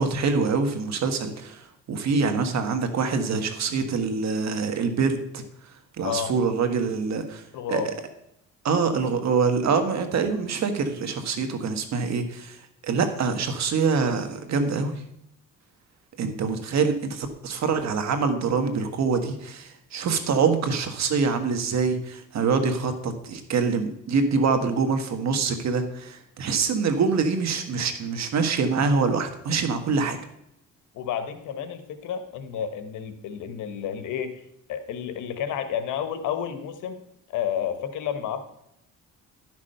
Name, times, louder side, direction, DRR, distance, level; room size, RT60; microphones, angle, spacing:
voice 1, 0.0-5.4 6.0-7.4 7.7-7.9 8.6-12.6 12.8-15.0 16.2-30.2, right 5 dB, 65° right, 7 dB, 1.6 m, -25 dB
voice 2, 6.0-6.3 7.5-7.9 30.9-34.4 34.7-37.0 37.3-38.4, left 9 dB, 85° left, 9 dB, 1.3 m, -31 dB
11.5 x 6.2 x 5.6 m, 0.79 s
cardioid pair, 90°, 30 cm